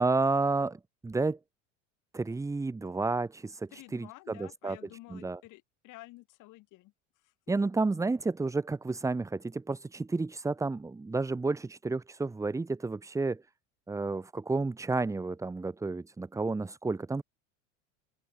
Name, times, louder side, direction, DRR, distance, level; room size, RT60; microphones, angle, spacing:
voice 1, 0.0-1.4 2.1-4.8 5.1-5.4 7.5-13.4 13.9-17.2, right 3 dB, 10° right, 0.7 m, -31 dB
voice 2, 3.7-7.3, left 19 dB, 50° left, 2.8 m, -51 dB
open air
hypercardioid pair, 80°, 38 cm